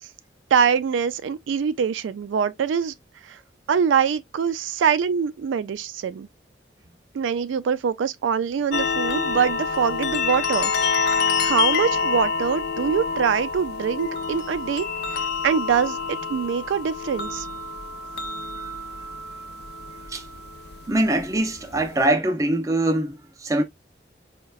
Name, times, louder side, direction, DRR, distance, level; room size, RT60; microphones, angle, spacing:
voice 1, 0.5-2.9 3.2-3.4 3.7-6.3 7.1-10.7 11.4-14.9 15.1-17.5, right 7 dB, 90° right, 0.3 m, -24 dB
sound 1, 8.7-22.1, left 5 dB, 60° left, 0.4 m, -27 dB
voice 2, 20.9-23.6, right 1 dB, 15° right, 0.4 m, -23 dB
4.5 x 2.1 x 2.3 m
head